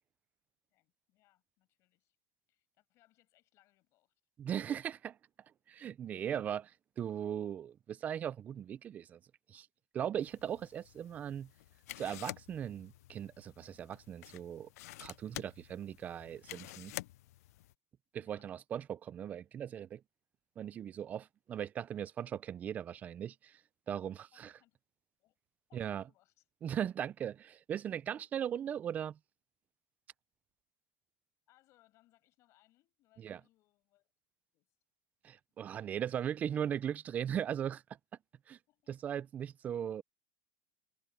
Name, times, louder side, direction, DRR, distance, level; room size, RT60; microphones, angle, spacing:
voice 1, 0.7-2.2 2.5-4.2 18.2-18.5 23.9-24.0 24.3-24.8 25.2-25.4 25.7-26.5 31.5-34.1 34.5-34.7 38.7-38.9, left 17 dB, 35° left, 7.6 m, -71 dB
voice 2, 4.4-5.2 5.7-6.7 7.0-9.2 9.5-9.7 9.9-11.5 12.0-14.7 15.0-16.9 18.1-20.0 20.6-23.6 23.9-24.5 25.7-26.0 26.6-29.2 33.2-33.4 35.2-37.8 38.5-38.6 38.9-40.0, right 9 dB, 20° right, 0.3 m, -38 dB
sound 1, 10.2-17.7, left 17 dB, 85° left, 0.4 m, -49 dB
supercardioid pair, 165°, 8 cm